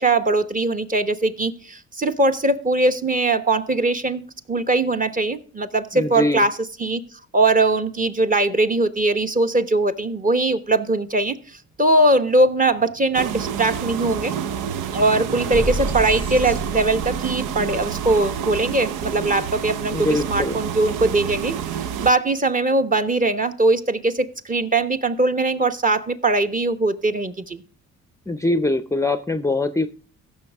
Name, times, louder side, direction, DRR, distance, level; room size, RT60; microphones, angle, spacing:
voice 1, 0.0-4.2 4.5-7.0 7.3-14.3 14.9-27.6, right 2 dB, 25° right, 1.1 m, -21 dB
voice 2, 5.9-6.5 19.9-20.6 28.3-29.9, left 2 dB, 10° left, 0.6 m, -22 dB
sound 1, 12.4-12.5 12.8-19.0, right 1 dB, 45° right, 4.3 m, -33 dB
sound 2, 13.1-22.1, right 8 dB, 90° right, 0.7 m, -29 dB
15.5 x 6.5 x 3.5 m
cardioid pair, 90°, 30 cm